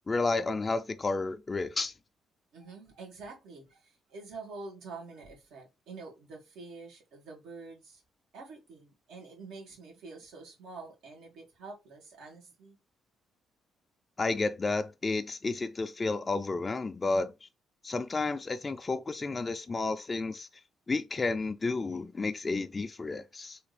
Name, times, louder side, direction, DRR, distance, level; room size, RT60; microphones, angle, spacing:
voice 1, 0.1-1.9 14.2-17.5 17.8-20.5 20.9-23.6, left 3 dB, 30° left, 0.3 m, -31 dB
voice 2, 2.5-8.0 8.3-12.8, right 3 dB, 85° right, 1.8 m, -47 dB
3.4 x 2.9 x 3.3 m
cardioid pair, 90°, 0 cm